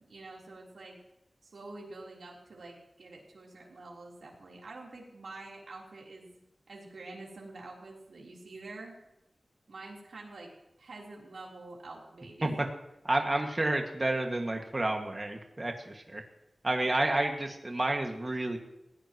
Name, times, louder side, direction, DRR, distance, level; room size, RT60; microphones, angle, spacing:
voice 1, 0.1-1.0 1.4-6.4 6.7-9.0 9.7-10.5 10.8-12.6, right 2 dB, 85° right, -3 dB, 3.8 m, -47 dB
voice 2, 13.0-16.2 16.6-18.6, right 2 dB, 30° right, 2 dB, 2.0 m, -30 dB
20.5 x 16.5 x 3.1 m, 0.89 s
wide cardioid pair, 95°, 0 cm